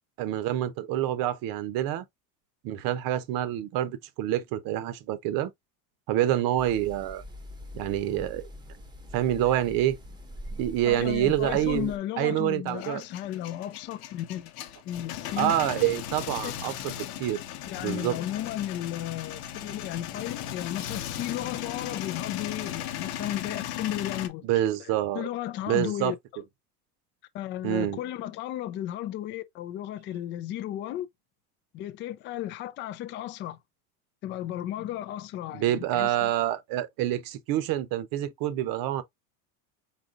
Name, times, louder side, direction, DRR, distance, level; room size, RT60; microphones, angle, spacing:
voice 1, 0.2-2.1 2.6-5.5 6.1-7.2 7.7-8.4 9.1-10.0 10.6-13.0 15.4-16.9 17.2-17.4 17.8-18.2 24.4-25.3 25.7-26.1 27.6-28.0 35.5-39.0, right 12 dB, 50° right, 0.8 m, -27 dB
sound 1, 6.6-12.0, equal, 10° right, 0.8 m, -43 dB
voice 2, 10.8-14.5 14.8-15.6 16.4-16.6 17.7-24.5 24.8-26.1 27.3-31.1 31.7-33.6 34.2-36.3, left 12 dB, 30° left, 0.3 m, -34 dB
Male speech man speaking / Vehicle / Engine starting, 12.7-24.3, left 11 dB, 90° left, 0.9 m, -37 dB
4.2 x 4.1 x 2.4 m
supercardioid pair, 130°, 45 cm